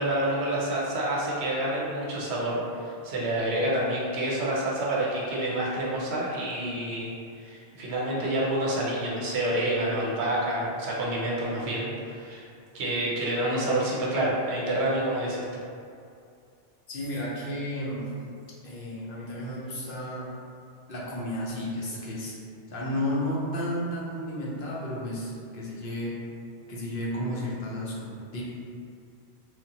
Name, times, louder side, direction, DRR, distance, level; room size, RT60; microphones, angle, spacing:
voice 1, 0.0-7.1 7.4-12.5 12.7-15.6, right 1 dB, 85° right, -5 dB, 0.9 m, -28 dB
voice 2, 16.9-18.1 18.6-20.3 20.9-22.3 22.7-26.2 26.7-28.4, left 1 dB, 60° left, -5 dB, 0.8 m, -32 dB
3.2 x 2.1 x 2.8 m, 2.5 s
omnidirectional pair, 1.1 m